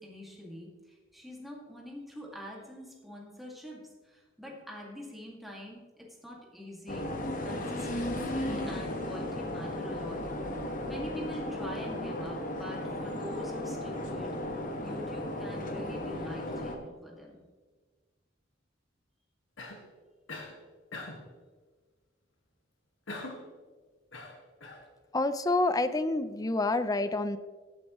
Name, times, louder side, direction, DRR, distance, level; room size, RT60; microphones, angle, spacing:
voice 1, 0.0-7.1 7.4-10.4 10.8-14.3 14.8-17.4, equal, ahead, -3 dB, 2.1 m, -44 dB
sound 1, 6.9-16.8, left 1 dB, 45° left, 1.3 m, -35 dB
Cough, 19.6-19.9 20.3-20.6 20.9-21.3 23.1-23.5 24.1-24.9, left 2 dB, 80° left, 1.7 m, -42 dB
voice 2, 25.1-27.4, left 2 dB, 20° left, 12 dB, 0.5 m, -28 dB
16.5 x 8.9 x 3.1 m, 1.4 s
head